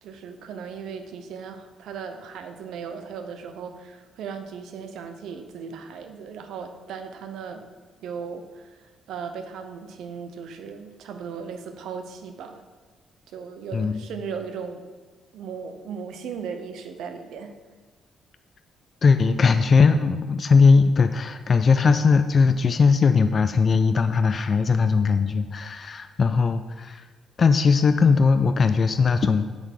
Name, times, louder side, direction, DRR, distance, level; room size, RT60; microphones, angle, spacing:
voice 1, 0.0-7.6 8.0-12.6 13.3-14.8 15.3-17.5, right 6 dB, 80° right, 7 dB, 0.7 m, -37 dB
voice 2, 13.7-14.0 19.0-27.1 27.4-29.4, left 5 dB, 45° left, 9 dB, 0.3 m, -19 dB
8.0 x 3.6 x 5.8 m, 1.4 s
cardioid pair, 90°, 0 cm